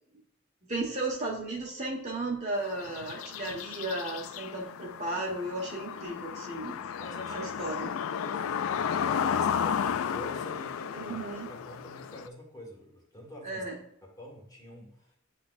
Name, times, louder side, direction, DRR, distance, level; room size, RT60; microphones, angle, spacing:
voice 1, 0.7-6.8 7.3-7.9 10.9-11.5 13.4-13.8, right 2 dB, 35° right, -1 dB, 1.5 m, -34 dB
sound 1, 2.6-12.3, left 7 dB, 80° left, 0.4 m, -33 dB
voice 2, 7.0-7.8 8.2-13.7 14.0-15.2, left 1 dB, 20° left, -3 dB, 1.8 m, -46 dB
10.0 x 3.9 x 2.6 m, 0.76 s
head